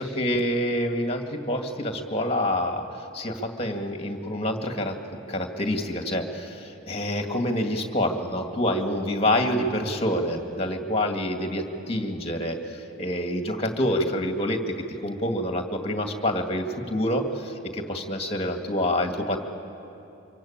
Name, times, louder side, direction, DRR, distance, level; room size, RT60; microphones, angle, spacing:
voice 1, 0.0-5.0 5.3-14.6 15.0-19.4, left 1 dB, 25° left, 4 dB, 2.1 m, -27 dB
25.5 x 23.5 x 8.8 m, 2.8 s
head